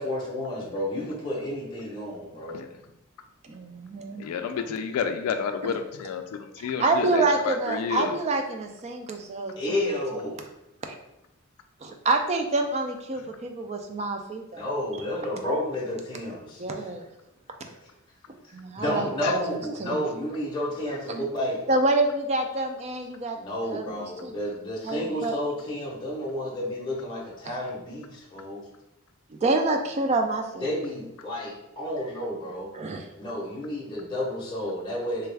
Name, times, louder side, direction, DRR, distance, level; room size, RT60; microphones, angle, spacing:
voice 1, 0.0-2.6 9.6-10.4 14.5-16.6 18.8-21.6 23.4-28.6 30.6-32.7 33.2-35.3, left 1 dB, 20° left, -5 dB, 0.7 m, -31 dB
voice 2, 3.4-4.2 6.6-9.9 10.8-10.9 11.8-14.6 16.6-17.0 18.5-20.0 21.7-24.4 24.8-25.4 29.3-30.7 32.7-33.0, right 2 dB, 30° right, 4 dB, 0.3 m, -27 dB
voice 3, 4.2-8.1 19.2-19.4, left 6 dB, 80° left, 7 dB, 0.3 m, -30 dB
3.3 x 2.3 x 3.3 m, 0.87 s
head